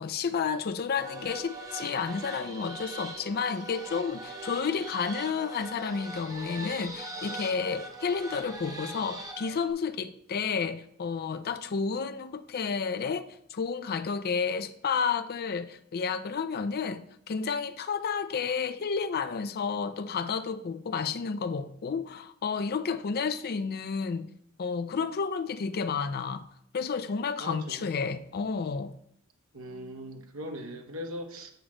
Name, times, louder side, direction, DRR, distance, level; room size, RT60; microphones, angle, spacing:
voice 1, 0.0-13.2 13.5-24.3 24.6-26.4 26.7-28.9, left 5 dB, 50° left, 0.4 m, -31 dB
sound 1, 1.0-9.7, right 2 dB, 15° right, 0.9 m, -41 dB
voice 2, 27.4-28.2 29.5-31.5, equal, 75° right, 1.0 m, -40 dB
7.9 x 3.0 x 6.1 m
head